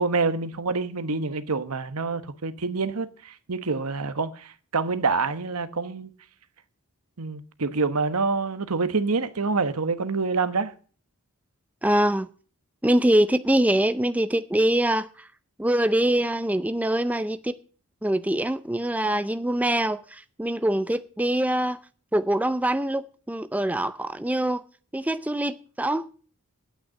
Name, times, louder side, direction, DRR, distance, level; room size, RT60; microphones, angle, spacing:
voice 1, 0.0-6.1 7.2-10.7, right 4 dB, 80° right, 1.1 m, -27 dB
voice 2, 11.8-12.3 12.8-15.3 15.6-17.6 18.0-21.8 22.1-24.6 24.9-26.1, right 1 dB, 5° right, 0.5 m, -24 dB
9.1 x 9.0 x 8.7 m
head